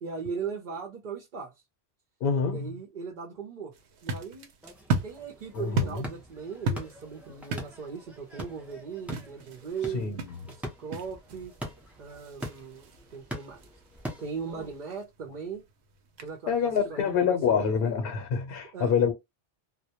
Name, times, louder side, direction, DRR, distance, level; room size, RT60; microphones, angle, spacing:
voice 1, 0.0-1.6 2.5-3.8 4.0-4.5 5.0-10.1 10.6-11.5 12.0-13.6 14.2-15.6 16.2-18.1 18.7-19.0, right 6 dB, 55° right, 0.7 m, -38 dB
voice 2, 2.2-2.7 5.5-6.0 9.9-10.2 16.5-19.1, left 6 dB, 70° left, 0.8 m, -26 dB
sound 1, 3.7-17.3, right 2 dB, 90° right, 0.9 m, -37 dB
sound 2, 4.6-14.8, equal, ahead, 0.5 m, -43 dB
2.1 x 2.1 x 2.8 m
omnidirectional pair, 1.1 m